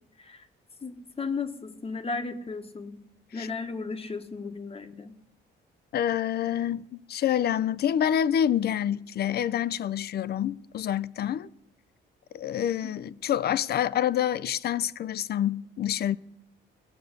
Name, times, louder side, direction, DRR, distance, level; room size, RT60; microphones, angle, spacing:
voice 1, 0.8-3.0 3.3-5.2 12.8-13.2, left 4 dB, 30° left, 1.1 m, -35 dB
voice 2, 5.9-11.5 12.3-16.2, left 10 dB, 55° left, 0.5 m, -27 dB
17.5 x 6.8 x 6.5 m
cardioid pair, 90°, 20 cm